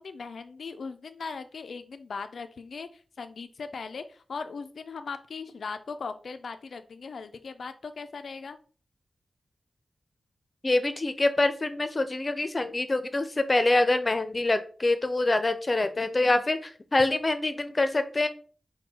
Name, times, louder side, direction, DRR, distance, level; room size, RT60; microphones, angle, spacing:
voice 1, 0.0-8.6, left 4 dB, 80° left, 9 dB, 0.3 m, -39 dB
voice 2, 10.6-18.3, left 2 dB, 35° left, 10 dB, 0.6 m, -25 dB
5.3 x 2.2 x 4.2 m, 0.41 s
cardioid pair, 65°, 0 cm